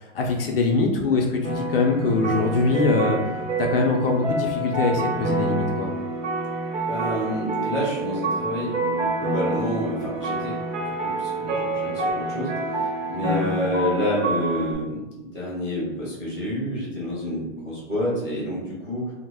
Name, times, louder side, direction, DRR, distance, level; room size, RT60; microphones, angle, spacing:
voice 1, 0.0-3.3 3.6-5.9, left 3 dB, 50° left, 1 dB, 0.4 m, -23 dB
sound 1, 1.4-14.7, right 2 dB, 65° right, 0.9 m, -27 dB
voice 2, 6.9-10.6 10.8-19.1, left 1 dB, 5° right, -15 dB, 0.5 m, -29 dB
3.0 x 2.0 x 3.4 m, 1.1 s
hypercardioid pair, 175°, 37 cm